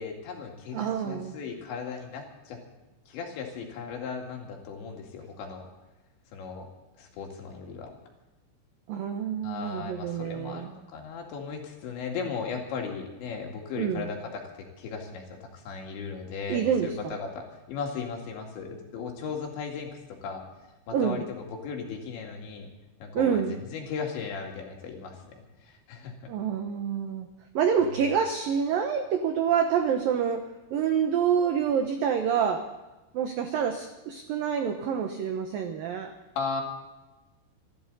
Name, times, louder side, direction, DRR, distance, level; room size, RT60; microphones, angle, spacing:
voice 1, 0.0-2.6 3.1-5.7 6.3-6.7 7.0-7.9 9.4-14.4 14.8-20.4 20.9-22.7 23.0-26.3 27.8-28.0 36.4-36.6, left 5 dB, 70° left, 1 dB, 4.5 m, -37 dB
voice 2, 0.7-1.4 8.9-10.7 13.8-14.1 16.5-17.2 20.9-21.2 23.1-23.6 26.3-27.3 27.5-32.7 33.1-36.1, right 7 dB, 80° right, 6 dB, 2.0 m, -27 dB
26.5 x 12.5 x 4.1 m, 1.1 s
omnidirectional pair, 5.5 m